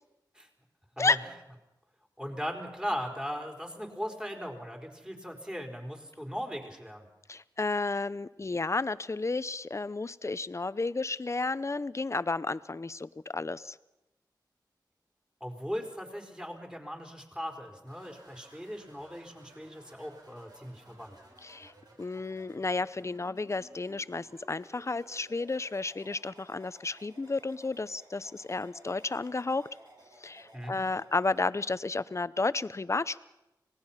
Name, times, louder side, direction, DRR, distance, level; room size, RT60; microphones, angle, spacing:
voice 1, 2.2-7.1 15.4-21.2 30.5-30.8, equal, 10° right, 3 dB, 4.1 m, -38 dB
voice 2, 7.3-13.8 21.4-21.7 22.0-29.7 30.2-33.2, left 3 dB, 40° left, 16 dB, 0.7 m, -32 dB
sound 1, 17.9-31.5, right 1 dB, 60° right, 5.8 m, -57 dB
25.5 x 19.0 x 5.7 m, 0.98 s
cardioid pair, 55°, 8 cm